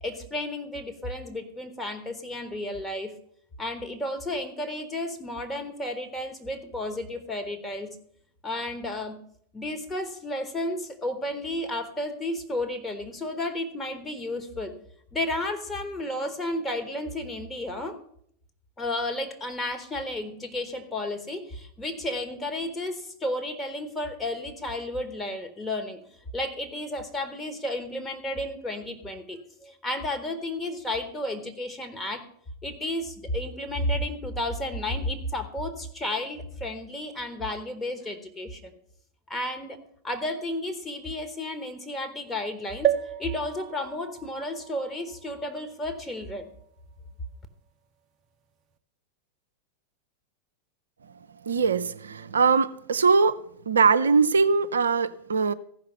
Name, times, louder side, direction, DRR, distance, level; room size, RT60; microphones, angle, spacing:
voice 1, 0.0-3.1 3.6-8.0 8.4-9.2 9.5-14.7 15.1-18.0 18.8-26.0 26.3-32.2 32.6-38.7 39.3-39.8 40.0-42.9 43.2-46.5, left 1 dB, 15° left, 1.5 m, -32 dB
sound 1, 42.8-46.5 47.1-47.2 47.4-47.5, right 11 dB, 30° right, 0.8 m, -32 dB
voice 2, 51.4-53.4 53.7-55.5, right 5 dB, 70° right, 0.4 m, -21 dB
14.5 x 5.7 x 6.9 m
figure-of-eight pair, 90°, 0 cm